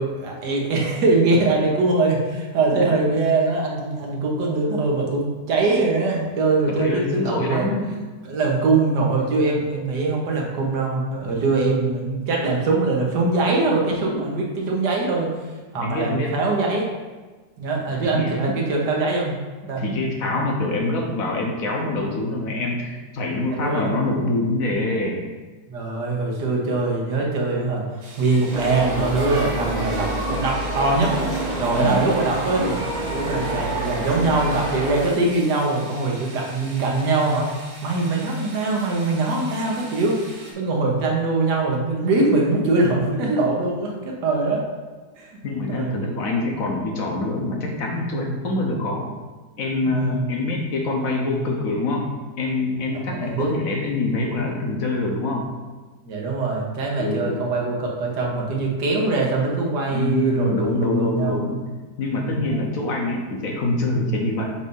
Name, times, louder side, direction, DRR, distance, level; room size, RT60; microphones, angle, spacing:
voice 1, 0.0-7.7 8.2-15.3 15.7-16.9 17.6-19.3 19.7-19.8 20.3-20.5 23.4-23.9 25.7-27.8 28.2-31.2 31.6-32.8 33.1-37.5 37.8-40.2 40.6-44.7 45.2-45.4 45.7-46.0 49.9-50.2 53.0-53.5 56.0-61.5 62.3-62.6, right 3 dB, 90° right, -1 dB, 1.7 m, -22 dB
voice 2, 6.7-7.9 15.8-16.4 18.0-18.4 19.8-25.2 31.8-32.0 45.4-49.1 49.6-52.1 52.4-55.5 57.0-57.4 59.9-61.6 62.0-64.5, left 2 dB, 60° left, 0 dB, 1.3 m, -25 dB
sound 1, 28.0-40.5, right 1 dB, 65° right, 1.7 m, -42 dB
sound 2, 28.5-35.1, right 1 dB, 35° right, 0.7 m, -27 dB
7.2 x 2.6 x 5.3 m, 1.3 s
omnidirectional pair, 1.7 m